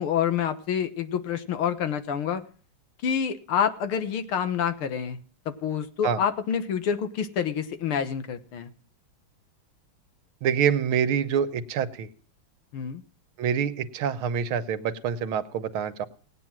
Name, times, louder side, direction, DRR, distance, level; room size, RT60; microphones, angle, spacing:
voice 1, 0.0-2.4 3.0-5.2 5.5-8.7 12.7-13.0, left 8 dB, 85° left, 10 dB, 2.1 m, -27 dB
voice 2, 10.4-12.1 13.4-16.1, right 7 dB, 90° right, 11 dB, 1.9 m, -26 dB
18.5 x 9.2 x 6.0 m, 0.42 s
omnidirectional pair, 2.3 m